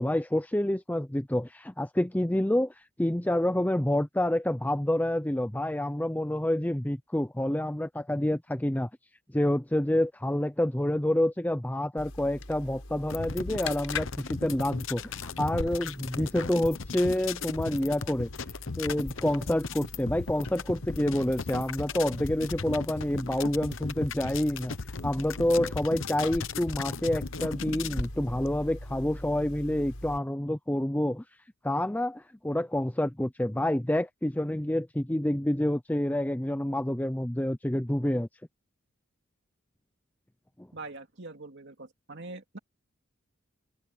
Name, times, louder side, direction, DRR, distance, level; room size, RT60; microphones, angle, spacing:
voice 1, 0.0-2.7 3.0-8.9 9.3-18.3 18.8-24.8 25.0-31.2 31.6-38.3 40.6-40.7, left 1 dB, 10° left, 0.6 m, -28 dB
sound 1, 12.0-30.2, left 2 dB, 85° left, 6.0 m, -43 dB
sound 2, 13.1-28.1, left 4 dB, 65° left, 0.9 m, -37 dB
voice 2, 40.7-42.6, right 3 dB, 60° right, 2.4 m, -43 dB
head